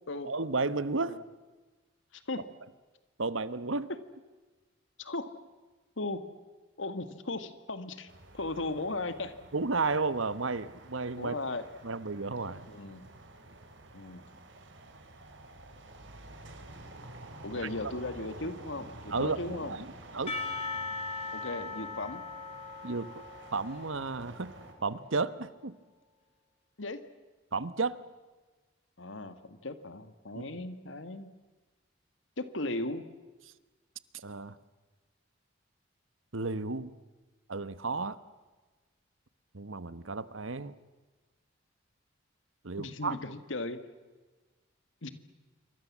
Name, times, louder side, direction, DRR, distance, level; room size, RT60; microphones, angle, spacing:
voice 1, 0.2-1.2 3.2-3.9 9.5-11.3 11.8-12.7 19.1-19.9 20.1-20.4 22.8-23.1 23.5-24.5 24.8-25.7 27.5-28.0 30.3-30.6 34.1-34.5 36.3-36.9 37.5-38.2 39.5-40.7 42.6-43.2, right 3 dB, 80° right, 15 dB, 1.2 m, -32 dB
voice 2, 2.1-2.5 5.0-5.4 6.0-6.3 6.8-9.3 11.2-11.7 12.7-13.1 13.9-14.3 17.4-19.8 21.3-22.2 26.8-27.0 29.0-31.3 32.4-33.0 42.8-43.8 45.0-45.1, left 2 dB, 70° left, 11 dB, 1.8 m, -37 dB
sound 1, 8.1-24.7, right 2 dB, 65° right, 3.7 m, -50 dB
Percussion / Church bell, 20.3-25.0, left 3 dB, 30° left, 3.7 m, -39 dB
27.5 x 24.5 x 7.4 m, 1.3 s
head